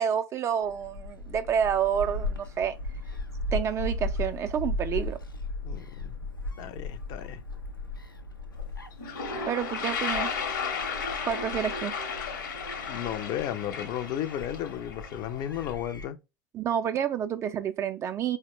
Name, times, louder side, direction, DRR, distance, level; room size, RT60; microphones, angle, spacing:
voice 1, 0.0-2.8 3.5-5.2 9.4-10.3 11.3-11.9 16.5-18.4, right 8 dB, 25° right, 0.3 m, -29 dB
Gull seagull, 0.6-16.1, left 2 dB, 90° left, 0.5 m, -37 dB
voice 2, 5.6-6.1 6.6-7.4 12.9-16.2, left 11 dB, 40° left, 0.4 m, -34 dB
Toilet flush, 8.6-8.7 8.9-15.7, left 5 dB, 65° left, 0.9 m, -34 dB
4.1 x 2.1 x 3.0 m
figure-of-eight pair, 80°, 11 cm